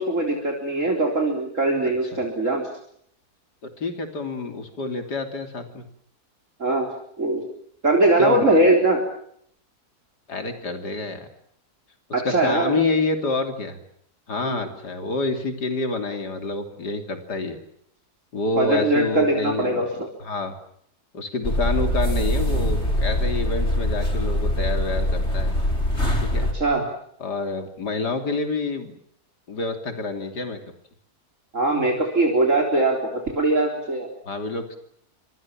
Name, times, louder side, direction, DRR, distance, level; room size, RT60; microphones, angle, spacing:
voice 1, 0.0-2.6 6.6-6.9 7.2-7.4 7.8-9.0 12.1-12.7 14.4-14.6 18.6-19.9 26.5-26.8 31.5-34.1, right 2 dB, 50° right, 1 dB, 4.3 m, -21 dB
voice 2, 3.8-5.8 8.2-8.6 10.3-11.3 12.2-13.8 14.3-17.6 18.3-19.9 20.2-20.5 21.1-25.6 26.2-26.5 27.2-28.9 29.5-30.6 34.3-34.8, left 3 dB, 85° left, 6 dB, 3.6 m, -27 dB
sound 1, 21.4-26.5, equal, 40° left, 5.3 m, -23 dB
27.5 x 25.5 x 7.4 m, 0.70 s
omnidirectional pair, 1.7 m